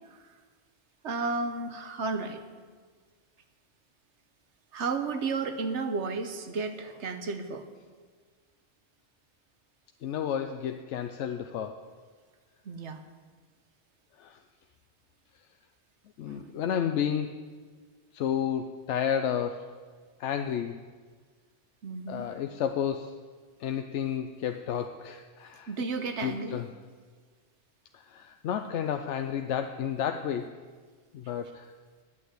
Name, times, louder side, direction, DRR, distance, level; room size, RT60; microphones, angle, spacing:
voice 1, 1.0-2.4 4.7-7.7 12.6-13.0 16.3-16.6 21.8-22.3 25.7-26.6, right 4 dB, 85° right, 8 dB, 1.3 m, -33 dB
voice 2, 10.0-11.8 14.2-14.4 16.2-17.4 18.1-19.7 20.2-20.8 22.1-23.2 23.6-25.7 26.2-26.7 27.9-30.5 31.1-31.7, left 8 dB, 85° left, 7 dB, 0.9 m, -31 dB
9.3 x 8.5 x 9.4 m, 1.5 s
omnidirectional pair, 1.2 m